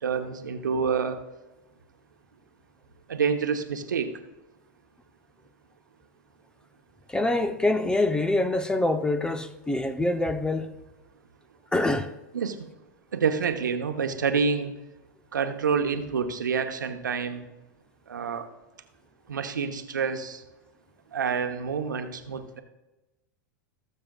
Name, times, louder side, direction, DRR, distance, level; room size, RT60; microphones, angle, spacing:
voice 1, 0.0-1.2 3.1-4.1 12.3-12.7 13.1-14.7 15.3-17.4 18.1-18.5 19.3-20.4 21.1-22.6, right 6 dB, 85° right, 1.0 m, -27 dB
voice 2, 7.1-10.7 11.7-12.1, left 2 dB, 10° left, 0.7 m, -25 dB
18.5 x 7.4 x 2.4 m
hypercardioid pair, 100°, 10 cm